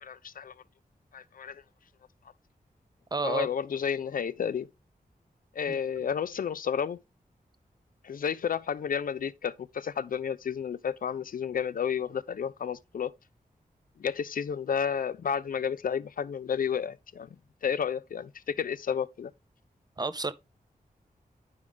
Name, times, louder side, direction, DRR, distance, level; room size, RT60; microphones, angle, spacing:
voice 1, 0.0-0.5 1.1-1.6 3.2-4.7 5.5-7.0 8.0-13.1 14.0-17.3 17.6-19.3, left 7 dB, 65° left, 0.4 m, -31 dB
voice 2, 3.1-3.5 5.7-5.8 20.0-20.3, right 3 dB, 25° right, 0.4 m, -30 dB
9.5 x 5.0 x 3.3 m
wide cardioid pair, 120°, 15 cm